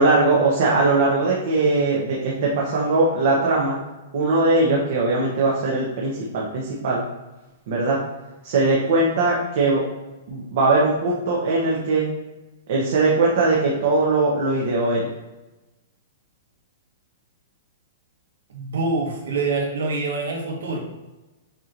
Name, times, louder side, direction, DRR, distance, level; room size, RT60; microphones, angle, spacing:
voice 1, 0.0-3.8 4.1-7.0 7.7-8.0 8.4-9.8 10.3-12.1 12.7-15.1, right 3 dB, 50° right, -4 dB, 0.9 m, -20 dB
voice 2, 18.5-20.8, right 3 dB, 85° right, -1 dB, 1.3 m, -25 dB
7.1 x 2.9 x 2.6 m, 1.1 s
hypercardioid pair, 170°, 0 cm